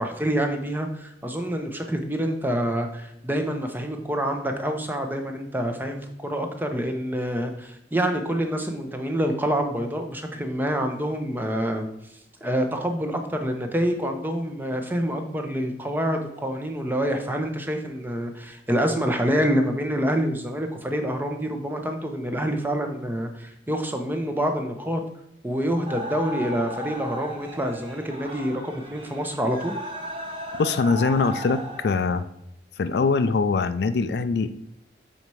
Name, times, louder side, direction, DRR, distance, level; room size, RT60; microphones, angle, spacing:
voice 1, 0.0-11.9 12.4-25.0 25.4-29.7, equal, 10° right, 5 dB, 0.7 m, -27 dB
sound 1, 25.9-32.2, equal, 30° right, 1.2 m, -36 dB
voice 2, 30.5-32.3 32.8-34.6, left 4 dB, 60° left, 12 dB, 0.4 m, -23 dB
6.7 x 4.2 x 4.6 m, 0.81 s
head